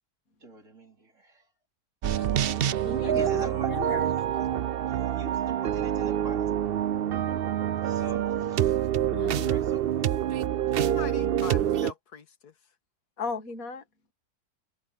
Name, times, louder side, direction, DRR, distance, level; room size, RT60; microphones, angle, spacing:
voice 1, 0.4-1.4 3.0-3.9 4.9-6.5 7.9-8.8 9.2-10.1 11.0-11.1, right 2 dB, 50° right, 4.0 m, -44 dB
sound 1, 2.0-11.9, right 10 dB, 80° right, 0.5 m, -26 dB
voice 2, 2.1-4.2 5.2-5.3 8.0-8.1 9.1-9.5 13.2-13.8, left 5 dB, 60° left, 2.3 m, -37 dB
voice 3, 10.8-12.5, left 6 dB, 80° left, 1.9 m, -41 dB
omnidirectional pair, 1.7 m